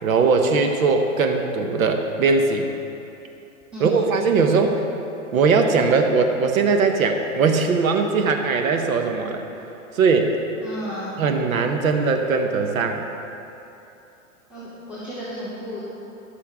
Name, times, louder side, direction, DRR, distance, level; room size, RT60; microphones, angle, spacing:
voice 1, 0.0-2.7 3.8-4.8 5.3-9.4 9.9-10.4 11.2-13.0, right 4 dB, 80° right, 4 dB, 1.2 m, -20 dB
voice 2, 3.7-4.0 10.6-11.1 14.5-15.8, equal, 5° right, -13 dB, 2.5 m, -33 dB
17.5 x 6.7 x 3.7 m, 2.9 s
hypercardioid pair, 120°, 41 cm